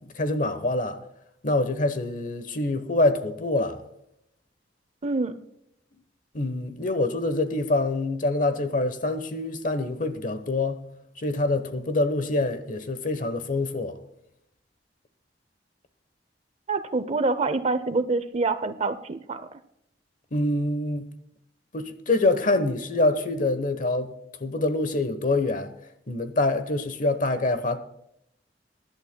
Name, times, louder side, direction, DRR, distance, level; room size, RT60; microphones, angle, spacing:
voice 1, 0.1-1.0 1.4-3.8 6.3-10.8 11.2-14.0 20.3-21.1 21.7-24.1 24.4-25.7 26.1-27.8, left 2 dB, 50° left, 1.0 m, -25 dB
voice 2, 5.0-5.3 16.7-19.6, right 3 dB, 35° right, 0.6 m, -26 dB
23.0 x 11.0 x 2.2 m
head